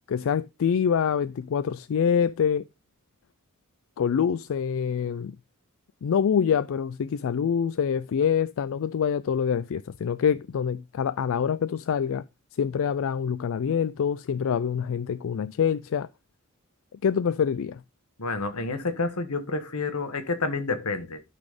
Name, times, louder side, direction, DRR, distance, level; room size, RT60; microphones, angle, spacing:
voice 1, 0.0-2.6 4.0-5.3 6.0-12.2 12.6-16.1 17.0-17.8, left 7 dB, 65° left, 0.4 m, -25 dB
voice 2, 18.2-21.2, left 3 dB, 85° left, 1.4 m, -29 dB
12.0 x 4.2 x 5.0 m
head